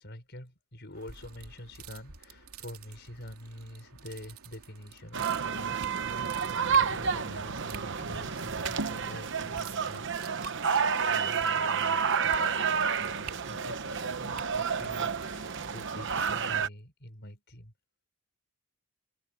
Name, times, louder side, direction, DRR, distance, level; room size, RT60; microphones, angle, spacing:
voice 1, 0.0-5.9 6.7-10.7 11.1-12.6 13.0-17.7, left 1 dB, 50° left, 5.6 m, -47 dB
sound 1, 0.9-15.8, right 4 dB, 80° right, 3.1 m, -48 dB
sound 2, 5.1-16.7, right 6 dB, 55° right, 1.0 m, -30 dB
head